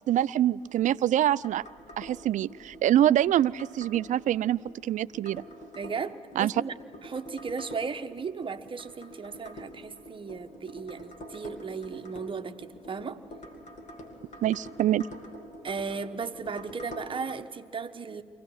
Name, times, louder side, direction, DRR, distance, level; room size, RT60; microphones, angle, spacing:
voice 1, 0.1-1.6 2.0-5.4 6.4-6.6 14.4-15.1, right 12 dB, 50° right, 19 dB, 0.5 m, -25 dB
sound 1, 0.6-17.4, equal, 45° left, 3.1 m, -47 dB
voice 2, 5.7-6.7 7.0-13.2 15.6-18.2, right 5 dB, 30° right, 9 dB, 1.1 m, -36 dB
24.0 x 17.0 x 6.4 m, 2.3 s
hypercardioid pair, 55°, 17 cm